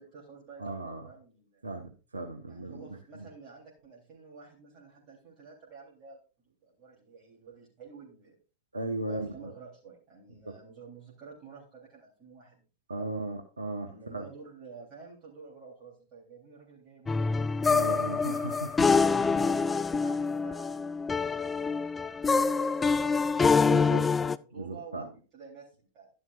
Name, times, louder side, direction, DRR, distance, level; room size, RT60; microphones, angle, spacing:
voice 1, 0.0-1.6 2.5-6.2 6.4-8.4 8.9-12.6 13.0-13.3 13.9-17.5 18.8-26.1, right 4 dB, 35° right, -4 dB, 3.6 m, -50 dB
voice 2, 0.6-1.0 1.6-3.3 8.7-9.3 10.4-10.5 12.9-14.3 17.7-18.9 23.6-24.0 24.6-25.0, right 2 dB, 75° right, 5 dB, 1.2 m, -36 dB
sound 1, 17.1-24.4, left 4 dB, 15° left, 0.4 m, -26 dB
12.0 x 11.0 x 2.5 m, 0.35 s
figure-of-eight pair, 90°, 0 cm